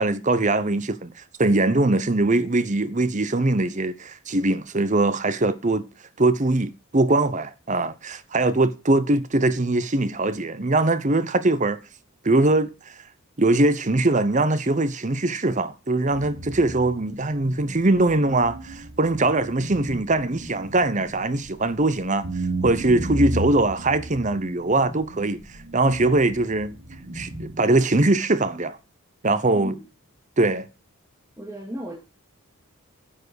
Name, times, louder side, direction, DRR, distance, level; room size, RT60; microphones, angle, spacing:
voice 1, 0.0-5.9 6.2-11.8 12.2-13.0 13.4-22.3 22.6-26.7 27.1-28.8 29.2-29.8 30.4-30.7, right 2 dB, 35° right, 0.8 m, -22 dB
sound 1, 16.1-27.6, right 1 dB, 65° right, 3.2 m, -34 dB
voice 2, 31.4-31.9, equal, 10° right, 2.4 m, -35 dB
10.0 x 7.5 x 6.3 m
head